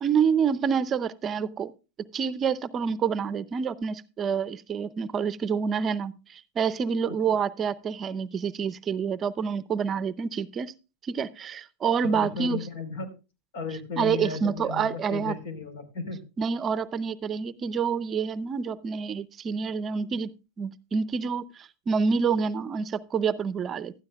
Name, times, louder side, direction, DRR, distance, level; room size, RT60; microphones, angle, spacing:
voice 1, 0.0-1.7 2.1-10.7 11.0-12.6 14.0-15.4 16.4-20.3 20.6-24.0, right 6 dB, 30° right, 17 dB, 0.6 m, -27 dB
voice 2, 12.0-13.1 13.5-16.2, left 5 dB, 65° left, 9 dB, 4.0 m, -35 dB
15.0 x 12.0 x 2.3 m, 0.30 s
hypercardioid pair, 105°, 0 cm